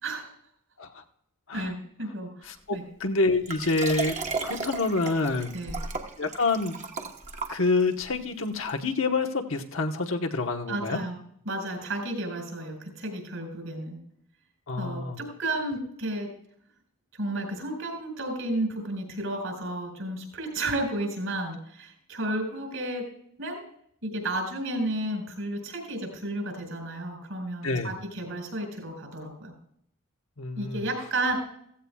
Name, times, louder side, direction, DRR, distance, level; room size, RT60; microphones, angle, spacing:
voice 1, 1.5-2.8 5.5-5.8 10.7-11.2 11.4-14.0 14.8-16.3 17.2-23.1 23.4-23.6 24.0-29.5 30.6-31.4, right 1 dB, 70° right, 4 dB, 4.7 m, -32 dB
voice 2, 2.7-4.2 4.4-5.5 6.2-6.8 7.5-11.0 14.7-15.2 27.6-27.9 30.4-30.8, left 3 dB, 70° left, 4 dB, 1.2 m, -27 dB
Liquid, 3.5-8.0 8.7-8.8, right 4 dB, 35° right, 1.2 m, -35 dB
15.5 x 15.5 x 2.3 m, 0.68 s
head